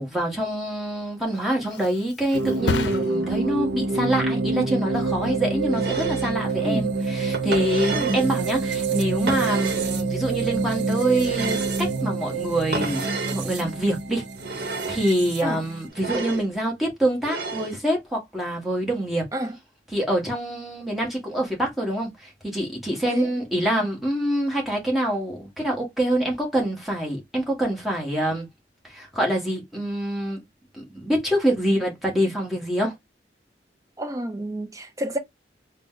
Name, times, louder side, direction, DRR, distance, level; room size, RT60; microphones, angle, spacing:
voice 1, 0.0-14.2 14.9-19.2 19.9-28.5 28.8-30.4 30.7-32.9, right 1 dB, ahead, 1.3 m, -25 dB
Thump thud, 1.1-8.5 9.0-9.4, left 4 dB, 85° left, 0.6 m, -36 dB
sound 1, 2.3-15.9, right 3 dB, 85° right, 0.6 m, -27 dB
sound 2, 5.7-6.4 7.3-8.3 9.3-10.0 11.2-11.9 12.7-13.4 14.4-15.1 15.9-16.5 17.2-17.8, right 2 dB, 60° right, 1.0 m, -31 dB
voice 2, 34.0-35.2, equal, 20° right, 0.6 m, -29 dB
4.0 x 2.2 x 3.7 m
head